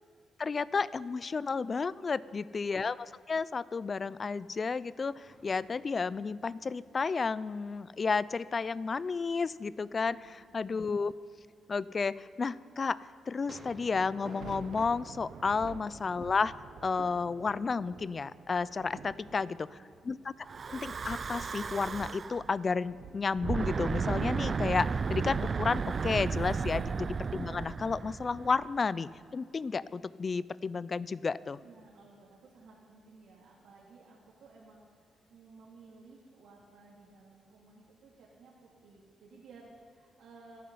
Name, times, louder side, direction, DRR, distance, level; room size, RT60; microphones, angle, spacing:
voice 1, 0.4-11.1 11.7-16.5 16.8-19.6 20.0-20.3 20.7-31.6, left 4 dB, 35° left, 19 dB, 0.4 m, -32 dB
sound 1, 5.2-19.8, right 1 dB, 20° right, 4.3 m, -59 dB
voice 2, 10.1-10.7 18.9-19.9 31.6-40.6, right 3 dB, 85° right, -6 dB, 2.6 m, -57 dB
sound 2, 13.9-29.3, right 6 dB, 70° right, 0.7 m, -52 dB
Breathing / Wind, 20.5-22.4 23.3-28.7, right 5 dB, 40° right, 0.3 m, -33 dB
26.0 x 9.4 x 5.5 m, 2.3 s
cardioid pair, 110°, 0 cm